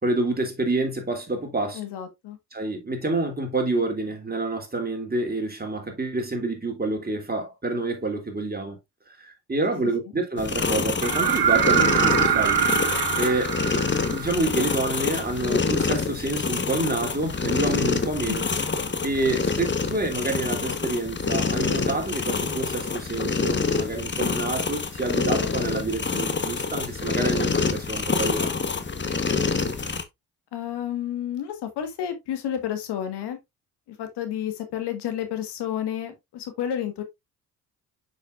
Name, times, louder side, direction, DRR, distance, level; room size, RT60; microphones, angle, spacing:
voice 1, 0.0-1.8 2.5-8.8 9.1-12.6 13.2-13.6 14.1-18.4 19.0-28.5, right 2 dB, 25° right, 2.9 m, -28 dB
voice 2, 1.7-2.4 18.2-18.4 30.5-33.4 33.9-37.0, left 10 dB, 75° left, 1.6 m, -31 dB
sound 1, 10.4-30.0, left 4 dB, 25° left, 1.1 m, -26 dB
sound 2, 11.0-14.8 16.7-16.8, right 8 dB, 65° right, 1.2 m, -23 dB
6.9 x 6.2 x 2.5 m
supercardioid pair, 60°, 40 cm